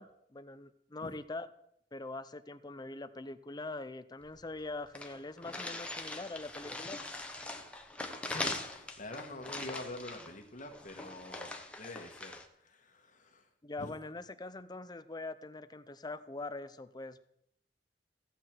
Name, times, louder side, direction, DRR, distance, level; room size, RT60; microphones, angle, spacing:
voice 1, 0.0-1.5 1.9-7.0 13.6-17.2, left 2 dB, 25° left, 12 dB, 0.6 m, -43 dB
sound 1, 4.2-4.3 4.6-4.7 4.9-12.5, left 2 dB, 5° left, 1.0 m, -42 dB
voice 2, 8.3-13.5 13.8-14.0, left 2 dB, 45° left, 4 dB, 1.4 m, -46 dB
15.0 x 8.6 x 4.5 m, 0.72 s
head